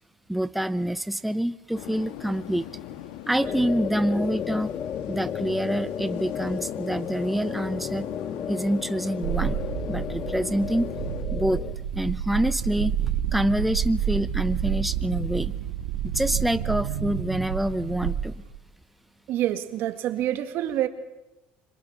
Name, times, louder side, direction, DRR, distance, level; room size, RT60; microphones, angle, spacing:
voice 1, 0.3-2.7 3.3-4.7 5.1-8.1 8.5-9.6 9.9-10.9 11.3-11.6 11.9-12.9 13.3-15.5 16.1-18.3, right 1 dB, ahead, 13 dB, 0.7 m, -26 dB
sound 1, 1.7-11.2, left 12 dB, 80° left, 1.4 m, -39 dB
sound 2, 3.4-11.7, left 8 dB, 40° left, 0.7 m, -34 dB
sound 3, 9.2-18.6, right 9 dB, 90° right, 2.0 m, -29 dB
voice 2, 19.3-20.9, right 12 dB, 65° right, 9 dB, 2.0 m, -27 dB
26.5 x 21.0 x 6.0 m, 1.0 s
supercardioid pair, 95°, 4 cm